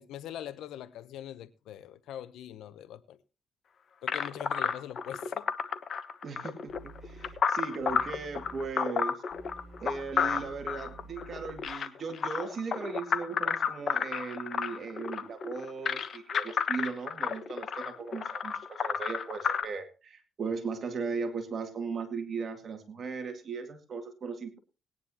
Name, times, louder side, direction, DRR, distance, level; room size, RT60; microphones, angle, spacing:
voice 1, 0.0-3.2 4.0-5.5, left 11 dB, 85° left, 0.7 m, -42 dB
sound 1, 4.1-19.6, left 6 dB, 55° left, 1.2 m, -31 dB
voice 2, 6.2-9.2 9.8-24.6, right 4 dB, 50° right, 2.0 m, -37 dB
sound 2, 6.7-7.3 7.8-8.7 9.3-11.7, right 2 dB, 25° left, 7.6 m, -50 dB
19.5 x 10.0 x 2.9 m
cardioid pair, 90°, 0 cm